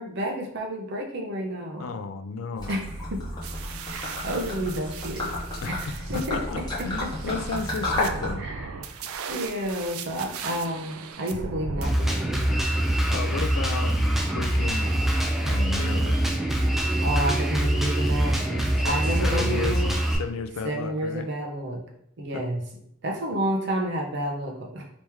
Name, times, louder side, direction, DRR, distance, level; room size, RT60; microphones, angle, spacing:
voice 1, 0.0-1.9 2.7-3.2 3.9-5.3 5.6-6.4 6.8-7.1 8.4-8.7 9.3-12.6 17.0-18.4 18.8-19.9 20.6-21.8 22.2-22.6 23.0-24.9, right 1 dB, 55° right, 1 dB, 0.7 m, -30 dB
voice 2, 1.8-2.8 5.6-6.6 6.8-8.4 13.1-14.0 14.3-15.0 15.5-16.2 18.5-19.8 20.2-21.3 22.3-22.4, left 4 dB, 70° left, 9 dB, 0.3 m, -33 dB
Gurgling / Liquid, 2.6-8.3, left 1 dB, 20° left, 1.0 m, -32 dB
sound 1, 3.4-11.9, right 5 dB, 80° right, 0.4 m, -38 dB
Drum kit, 11.8-20.2, right 1 dB, ahead, 0.4 m, -24 dB
3.1 x 2.9 x 3.4 m, 0.69 s
head